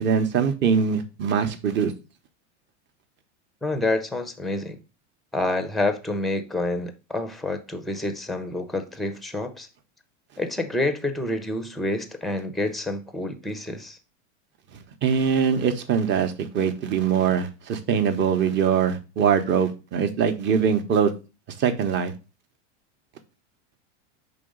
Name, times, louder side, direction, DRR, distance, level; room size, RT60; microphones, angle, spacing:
voice 1, 0.0-1.9 14.7-21.1 21.5-22.1, right 7 dB, 30° right, 0.9 m, -23 dB
voice 2, 3.6-4.8 5.3-9.7 10.4-14.0, left 2 dB, ahead, 0.5 m, -28 dB
5.1 x 3.9 x 5.0 m
supercardioid pair, 135°, 36 cm